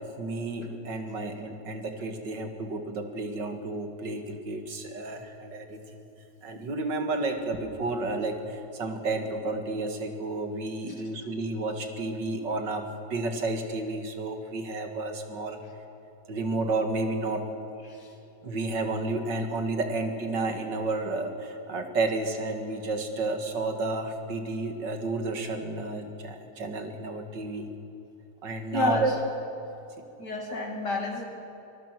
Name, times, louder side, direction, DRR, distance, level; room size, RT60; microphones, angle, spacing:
voice 1, 0.0-6.0 6.4-15.6 16.3-17.5 18.4-27.7 28.4-29.2 30.0-30.1 30.5-30.6, right 2 dB, 85° right, 5 dB, 2.6 m, -31 dB
voice 2, 28.7-29.1 30.2-31.2, left 2 dB, 70° left, 3 dB, 3.2 m, -30 dB
23.5 x 20.5 x 6.2 m, 3.0 s
omnidirectional pair, 1.9 m